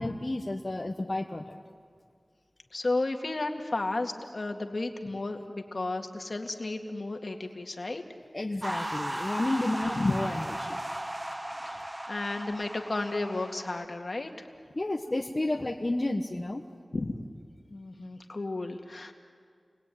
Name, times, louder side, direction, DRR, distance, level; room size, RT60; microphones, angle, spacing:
voice 1, 0.0-1.6 8.3-10.8 14.7-16.6, left 2 dB, 40° left, 2 dB, 1.5 m, -31 dB
voice 2, 2.7-8.0 10.0-10.2 11.6-14.3 16.9-17.1 17.7-19.1, left 2 dB, 60° left, 4 dB, 2.2 m, -33 dB
sound 1, 8.6-13.8, right 1 dB, 20° right, 0.9 m, -36 dB
30.0 x 21.5 x 9.4 m, 2.1 s
wide cardioid pair, 45°, 0 cm